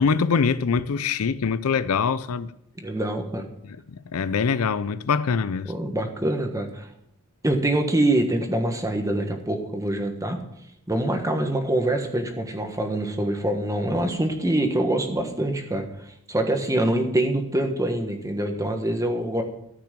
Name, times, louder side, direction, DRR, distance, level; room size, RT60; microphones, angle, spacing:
voice 1, 0.0-2.5 3.9-5.7, left 5 dB, 70° left, 0.5 m, -23 dB
voice 2, 2.8-3.5 5.6-6.9 7.4-10.4 10.9-19.4, right 1 dB, 15° right, 1.4 m, -25 dB
14.0 x 6.0 x 7.5 m
head